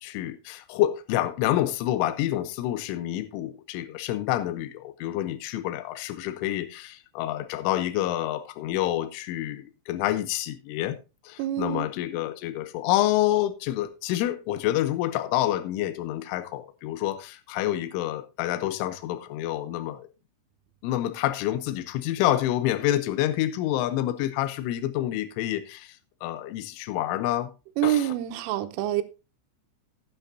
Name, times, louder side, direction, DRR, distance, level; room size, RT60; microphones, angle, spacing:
voice 1, 0.0-11.0 11.2-20.1 20.8-26.0 26.2-27.5 27.8-28.2, left 13 dB, 85° left, 3.2 m, -28 dB
voice 2, 11.4-11.9 27.8-29.0, right 13 dB, 90° right, 3.4 m, -26 dB
15.5 x 9.0 x 2.6 m
omnidirectional pair, 5.7 m